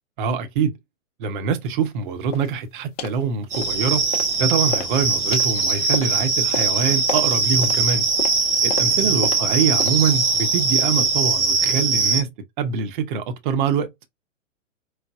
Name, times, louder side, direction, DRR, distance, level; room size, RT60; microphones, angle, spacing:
voice 1, 0.2-0.7 1.2-4.0 4.4-8.1 8.6-12.3 12.6-13.9, right 6 dB, 40° right, 0.8 m, -24 dB
sound 1, 2.3-2.6 3.0-3.2 3.5-4.4 4.7-10.2, left 5 dB, 30° left, 0.7 m, -33 dB
sound 2, 3.5-12.2, right 4 dB, 10° right, 0.3 m, -21 dB
4.8 x 2.1 x 2.6 m
figure-of-eight pair, 120°, 39 cm